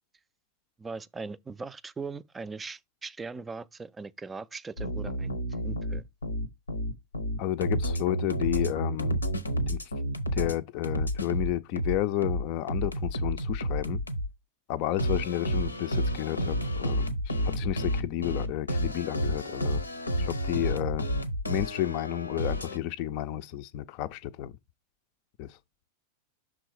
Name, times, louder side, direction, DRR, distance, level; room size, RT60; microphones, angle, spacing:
voice 1, 0.8-5.3 5.6-6.0, right 4 dB, 15° right, 0.4 m, -40 dB
sound 1, 4.8-10.5 10.8-14.3 15.0-22.8, equal, 80° left, 0.7 m, -30 dB
voice 2, 7.4-9.2 9.7-9.8 10.3-14.0 14.7-19.8 20.2-21.0 21.5-24.6 25.4-25.6, left 13 dB, 45° left, 0.5 m, -31 dB
6.1 x 3.8 x 4.7 m
figure-of-eight pair, 90°, 0 cm